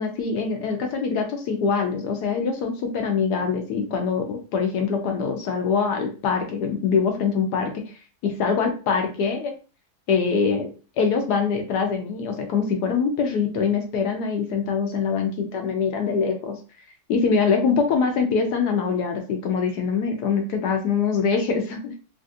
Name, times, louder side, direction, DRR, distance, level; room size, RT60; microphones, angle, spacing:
voice 1, 0.0-7.8 8.2-9.5 10.1-16.6 17.1-22.0, left 5 dB, 75° left, 4 dB, 1.1 m, -24 dB
3.2 x 2.5 x 2.6 m, 0.35 s
omnidirectional pair, 1.8 m